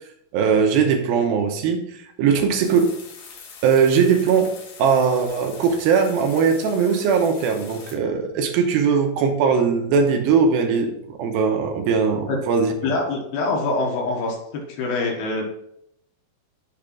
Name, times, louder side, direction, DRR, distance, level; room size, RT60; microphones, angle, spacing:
voice 1, 0.3-3.0 3.6-12.7, right 6 dB, 85° right, 4 dB, 2.7 m, -20 dB
sound 1, 2.6-8.0, left 5 dB, 70° left, 2.8 m, -43 dB
voice 2, 12.8-14.4 14.7-15.4, left 3 dB, 85° left, 0 dB, 3.2 m, -24 dB
7.6 x 3.7 x 6.0 m, 0.75 s
omnidirectional pair, 4.2 m